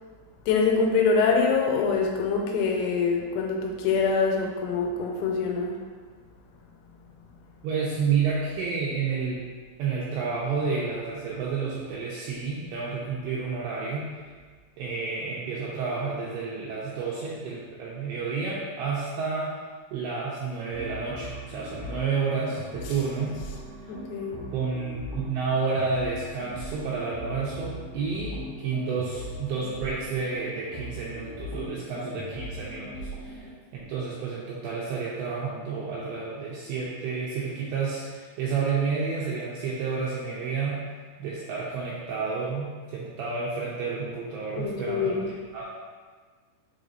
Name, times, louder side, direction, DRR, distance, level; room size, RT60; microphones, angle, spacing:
voice 1, 0.5-5.8 23.9-24.4 44.5-45.2, left 5 dB, 90° left, 1 dB, 3.4 m, -24 dB
voice 2, 7.6-9.4 9.8-14.1 14.8-19.5 19.9-23.4 24.5-32.9 33.2-33.5 33.7-40.8 41.2-45.2 45.5-45.7, right 5 dB, 85° right, -6 dB, 2.6 m, -30 dB
sound 1, 20.7-33.5, left 1 dB, 60° left, 2.8 m, -39 dB
7.5 x 4.9 x 2.6 m, 1.5 s
omnidirectional pair, 5.9 m